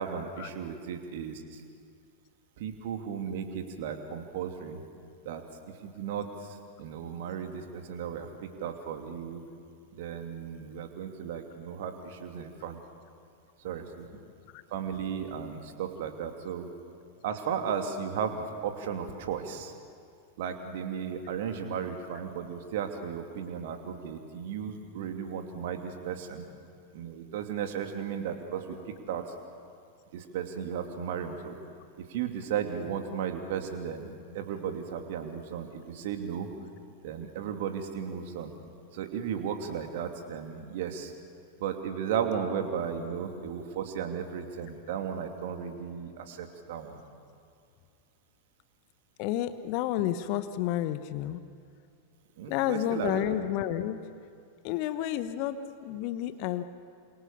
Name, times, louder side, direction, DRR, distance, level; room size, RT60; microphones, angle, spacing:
voice 1, 0.0-1.6 2.6-4.8 5.2-5.4 5.8-9.4 9.9-12.8 13.6-14.2 14.7-16.7 17.2-19.7 20.4-26.5 26.9-29.2 30.1-31.6 32.1-36.5 37.0-38.5 38.9-41.1 41.6-47.0 52.4-53.2, right 7 dB, 55° right, 5 dB, 2.7 m, -35 dB
voice 2, 49.2-51.4 52.5-54.0 54.6-56.6, left 12 dB, 45° left, 11 dB, 1.1 m, -30 dB
28.5 x 27.0 x 7.0 m, 2.3 s
figure-of-eight pair, 90°, 0 cm